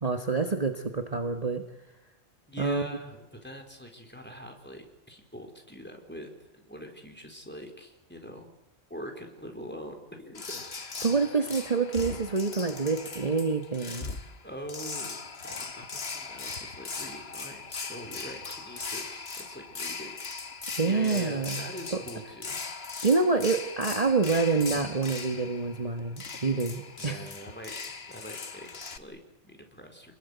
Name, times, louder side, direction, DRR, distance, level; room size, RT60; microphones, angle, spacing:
voice 1, 0.0-1.6 2.6-2.9 11.0-14.1 20.7-21.7 21.9-22.0 23.0-27.2, right 4 dB, 30° right, 6 dB, 1.5 m, -27 dB
voice 2, 2.5-8.5 8.9-10.7 14.4-15.2 15.4-20.1 20.5-23.0 27.0-30.1, equal, 10° left, 4 dB, 4.3 m, -43 dB
sound 1, 10.3-29.0, left 4 dB, 55° left, 1.8 m, -39 dB
29.0 x 21.5 x 8.1 m, 0.94 s
omnidirectional pair, 1.3 m